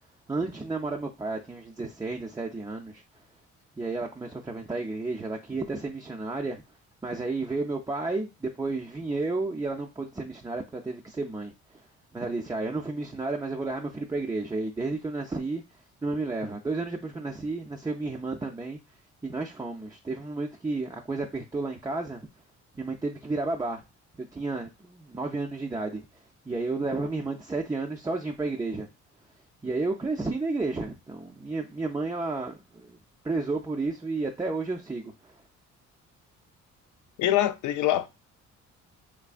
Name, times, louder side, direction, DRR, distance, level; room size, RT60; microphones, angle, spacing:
voice 1, 0.3-3.0 3.8-6.6 7.0-11.5 12.1-15.6 16.0-18.8 19.2-22.3 22.7-23.8 24.3-26.1 26.5-28.9 29.6-33.0 33.2-35.4, right 3 dB, 15° right, 0.4 m, -32 dB
voice 2, 37.2-38.1, left 13 dB, 75° left, 0.5 m, -24 dB
3.4 x 3.1 x 2.4 m
cardioid pair, 90°, 30 cm